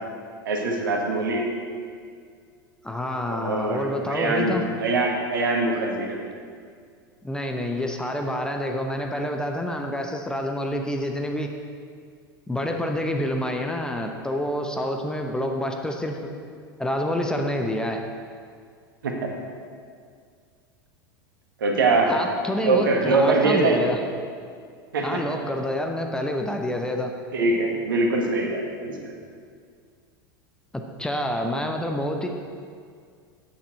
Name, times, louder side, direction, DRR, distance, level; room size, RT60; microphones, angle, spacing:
voice 1, 0.4-1.5 3.3-6.2 19.0-19.3 21.6-22.1 22.6-23.8 24.9-25.2 27.3-29.1, right 3 dB, 65° right, 1 dB, 1.5 m, -23 dB
voice 2, 2.8-4.6 7.2-11.5 12.5-16.2 16.8-18.0 21.9-24.0 25.0-27.1 30.7-32.3, left 1 dB, 5° left, 3 dB, 0.7 m, -27 dB
8.6 x 8.5 x 4.4 m, 2.1 s
figure-of-eight pair, 85°, 12 cm